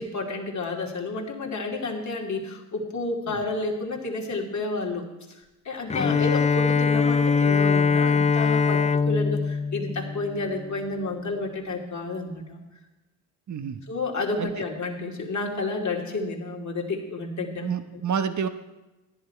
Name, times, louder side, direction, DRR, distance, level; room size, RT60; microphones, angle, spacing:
voice 1, 0.0-5.4 5.6-12.6 13.9-18.0, left 2 dB, 40° left, 0 dB, 2.8 m, -31 dB
Bowed string instrument, 5.9-10.8, left 5 dB, 15° left, 0.4 m, -22 dB
voice 2, 13.5-13.8 14.4-14.5 17.6-18.5, right 7 dB, 40° right, 9 dB, 1.1 m, -29 dB
14.5 x 11.0 x 4.6 m, 1.0 s
hypercardioid pair, 55°, 44 cm